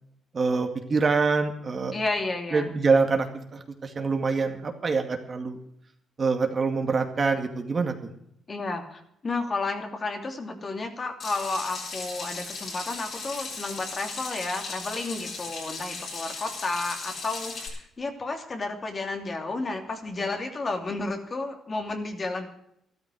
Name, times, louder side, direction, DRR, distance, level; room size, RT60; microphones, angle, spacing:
voice 1, 0.3-1.9 2.5-5.6 6.2-7.9, right 4 dB, 40° right, 5 dB, 2.2 m, -25 dB
voice 2, 1.9-2.7 8.5-22.5, left 3 dB, 35° left, 4 dB, 2.9 m, -32 dB
Water tap faucet / Sink (filling or washing), 11.2-17.7, left 4 dB, 60° left, 8.0 m, -37 dB
13.0 x 13.0 x 6.4 m, 0.74 s
cardioid pair, 90°, 0 cm